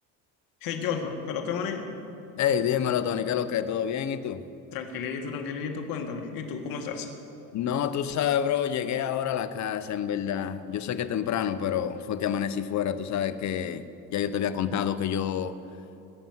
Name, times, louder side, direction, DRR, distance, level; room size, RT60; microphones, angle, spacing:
voice 1, 0.6-1.9 4.7-7.1, left 6 dB, 70° left, 3 dB, 1.9 m, -32 dB
voice 2, 2.4-4.4 7.5-13.8 14.1-15.6, left 9 dB, 50° left, 12 dB, 1.0 m, -28 dB
19.0 x 7.0 x 9.4 m, 2.7 s
supercardioid pair, 95°, 36 cm